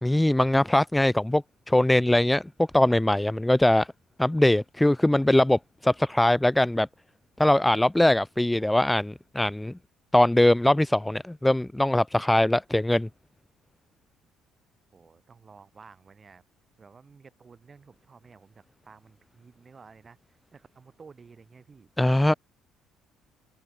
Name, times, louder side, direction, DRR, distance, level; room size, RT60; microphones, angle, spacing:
voice 1, 0.0-2.4 2.7-3.9 4.2-6.9 7.4-9.7 10.1-13.1 22.0-22.3, left 1 dB, 5° left, 0.8 m, -22 dB
voice 2, 14.9-16.4 16.8-20.2 20.5-21.9, right 5 dB, 30° right, 6.8 m, -52 dB
cardioid pair, 100°, 0 cm